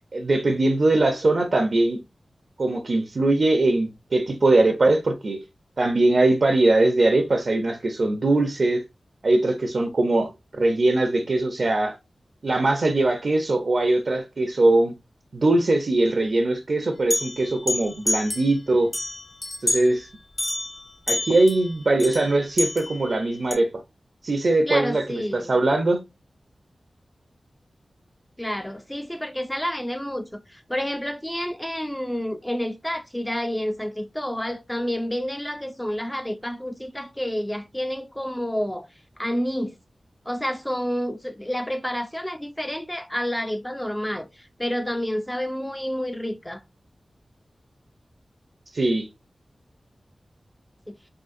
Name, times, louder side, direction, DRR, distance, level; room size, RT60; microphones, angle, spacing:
voice 1, 0.1-2.0 2.6-5.4 5.8-8.8 9.2-11.9 12.4-14.9 15.3-18.9 19.6-20.1 21.1-23.7 24.2-26.0 48.7-49.1, right 2 dB, 60° right, 0.5 m, -21 dB
sound 1, 17.1-18.6 18.9-19.9 20.4-23.5, left 2 dB, 40° left, 0.9 m, -29 dB
voice 2, 24.7-25.6 28.4-38.9 39.2-39.7 40.3-46.6 50.9-51.0, equal, 10° left, 0.3 m, -29 dB
3.7 x 2.5 x 2.5 m
wide cardioid pair, 85°, 0 cm